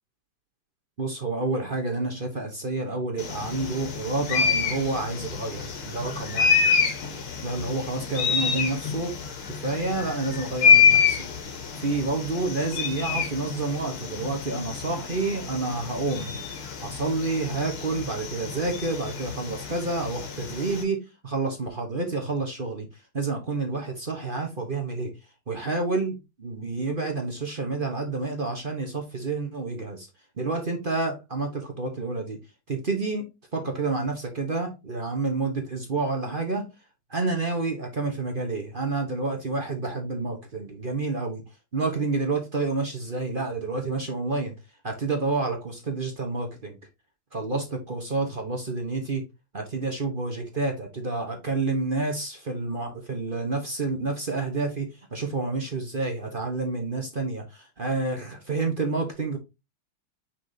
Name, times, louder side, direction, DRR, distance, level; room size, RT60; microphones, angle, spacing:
voice 1, 1.0-6.6 7.4-9.1 9.4-11.3 11.8-16.4 16.8-21.0 21.2-22.9 23.1-25.1 25.5-30.1 30.4-32.4 32.7-33.2 33.5-36.6 37.1-41.4 41.7-44.5 44.8-46.8 47.3-49.2 49.5-59.4, right 3 dB, 35° right, 0.9 m, -29 dB
sound 1, 3.2-20.8, left 6 dB, 90° left, 2.3 m, -27 dB
6.0 x 5.6 x 2.8 m
omnidirectional pair, 2.3 m